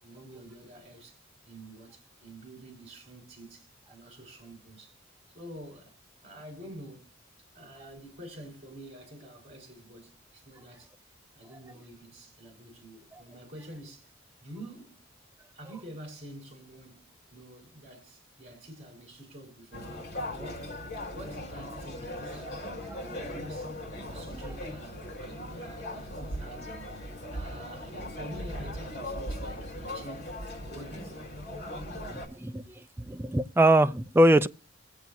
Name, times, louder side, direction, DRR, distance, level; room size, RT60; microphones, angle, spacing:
voice 1, 0.0-5.0 5.3-5.9 6.2-7.2 7.5-10.9 11.3-15.0 15.5-20.0 20.3-20.7 21.1-22.6 23.0-23.8 24.0-27.0 27.3-30.3 30.6-31.3, right 1 dB, 35° right, 4.6 m, -48 dB
sound 1, 19.7-32.3, left 1 dB, 55° left, 3.8 m, -38 dB
voice 2, 32.1-32.6 33.0-34.5, right 1 dB, 10° right, 0.4 m, -22 dB
23.0 x 8.1 x 2.6 m
head